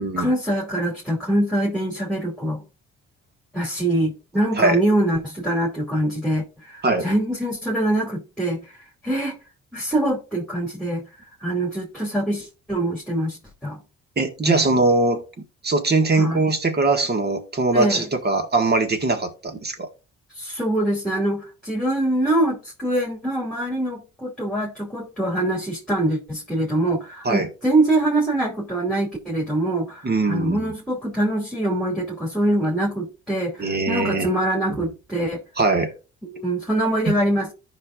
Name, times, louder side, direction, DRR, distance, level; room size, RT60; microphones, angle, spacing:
voice 1, 0.2-2.6 3.5-8.8 9.0-9.4 9.7-11.0 11.4-13.4 13.6-13.8 14.5-14.7 16.2-16.4 17.7-18.0 20.4-35.4 36.2-37.5, right 1 dB, ahead, 2.7 m, -24 dB
voice 2, 14.2-15.2 15.6-19.9 27.3-27.5 30.0-30.7 33.6-34.3 34.7-34.8 35.6-35.9 37.1-37.2, right 3 dB, 35° right, 1.8 m, -21 dB
14.0 x 5.5 x 2.5 m
cardioid pair, 90°, 30 cm